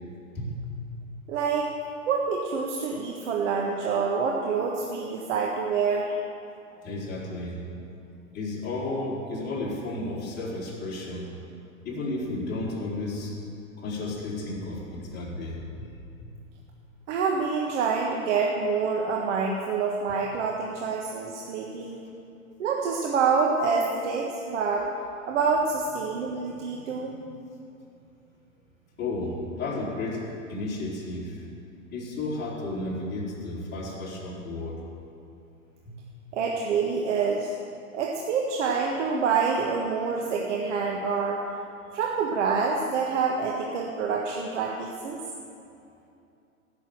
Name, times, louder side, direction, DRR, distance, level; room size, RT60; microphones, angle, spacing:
voice 1, 1.3-1.7 2.1-6.2 17.1-22.0 22.6-24.9 25.3-27.2 36.3-37.5 37.9-41.4 41.9-45.2, right 5 dB, 60° right, -1 dB, 1.5 m, -27 dB
voice 2, 6.8-7.6 8.3-11.3 11.8-13.3 13.8-15.8 16.2-16.3 29.0-31.4 31.9-34.8, left 2 dB, 25° left, -6 dB, 4.0 m, -33 dB
16.0 x 6.8 x 7.8 m, 2.7 s
hypercardioid pair, 125°, 41 cm